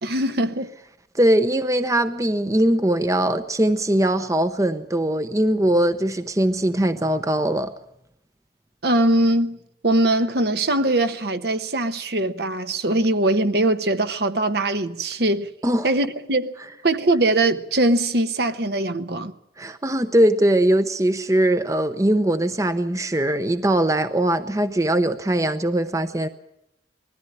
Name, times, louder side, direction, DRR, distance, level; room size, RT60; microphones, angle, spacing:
voice 1, 0.0-0.7 8.8-9.6 9.8-15.5 15.8-16.5 16.8-19.3, right 1 dB, 60° right, 1.1 m, -21 dB
voice 2, 1.1-7.7 15.6-15.9 19.6-26.3, right 1 dB, 15° right, 0.7 m, -21 dB
20.5 x 14.0 x 9.9 m
head